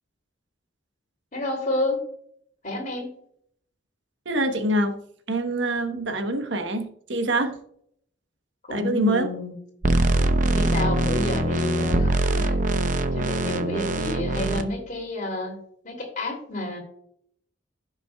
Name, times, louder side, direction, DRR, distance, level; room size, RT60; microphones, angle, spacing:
voice 1, 1.3-2.0 2.6-3.1 8.6-9.5 10.5-12.1 12.4-12.6 13.1-15.6 15.8-16.8, left 2 dB, 40° left, 2 dB, 2.8 m, -29 dB
voice 2, 4.3-5.0 5.3-7.5 8.7-9.3, right 1 dB, 70° right, 7 dB, 1.1 m, -25 dB
sound 1, 9.8-14.6, right 1 dB, 45° right, 0.7 m, -23 dB
16.0 x 6.1 x 2.3 m, 0.67 s
head